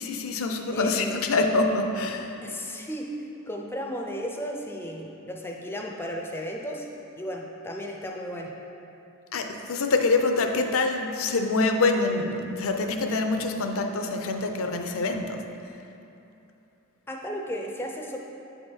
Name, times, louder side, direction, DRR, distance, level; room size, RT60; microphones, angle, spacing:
voice 1, 0.0-2.4 9.3-15.4, left 3 dB, 65° left, 5 dB, 0.5 m, -25 dB
voice 2, 0.7-1.2 2.4-3.1 3.5-6.9 7.2-8.5 17.1-18.2, equal, 10° left, 0 dB, 0.4 m, -34 dB
8.4 x 3.4 x 4.4 m, 2.8 s
head